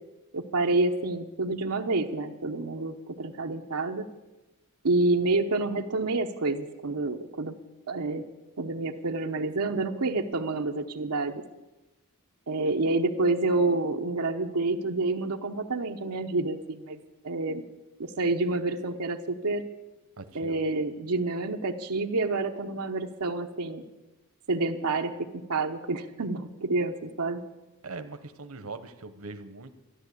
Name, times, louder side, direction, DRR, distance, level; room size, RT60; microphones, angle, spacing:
voice 1, 0.3-4.1 4.8-7.5 7.9-8.3 8.6-11.4 12.5-17.0 17.2-17.6 18.0-19.6 20.3-23.8 24.5-27.4, right 2 dB, 85° right, 3 dB, 0.9 m, -28 dB
voice 2, 20.2-20.6 27.8-29.7, right 3 dB, 65° right, 10 dB, 1.0 m, -41 dB
13.5 x 11.0 x 8.3 m, 1.1 s
head